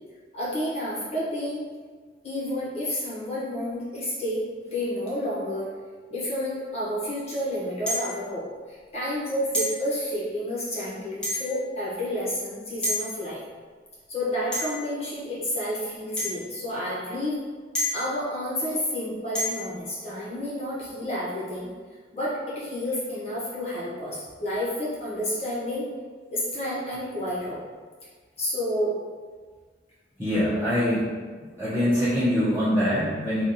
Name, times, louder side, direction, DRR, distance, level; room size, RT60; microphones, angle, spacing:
voice 1, 0.3-1.6 2.2-5.7 6.1-13.4 14.1-17.4 17.9-21.7 22.1-25.9 26.3-27.6 28.4-29.0, equal, 35° left, -9 dB, 1.5 m, -30 dB
sound 1, 7.9-8.2 9.5-9.8 11.2-11.6 12.8-13.0 14.5-14.9 16.2-16.4 17.7-18.1 19.3-19.7, left 1 dB, 5° left, 1.1 m, -28 dB
voice 2, 30.2-31.1 31.4-33.4, equal, 10° right, -15 dB, 1.1 m, -24 dB
3.5 x 2.6 x 4.2 m, 1.5 s
head